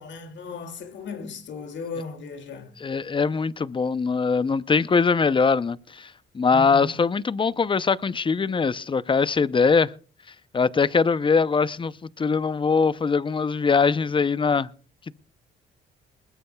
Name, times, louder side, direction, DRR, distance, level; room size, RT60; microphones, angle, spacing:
voice 1, 0.0-2.7 6.5-7.0, left 4 dB, 65° left, 2.6 m, -36 dB
voice 2, 2.8-9.9 10.5-14.7, left 5 dB, 25° left, 0.6 m, -22 dB
20.5 x 20.5 x 2.3 m
cardioid pair, 90°, 20 cm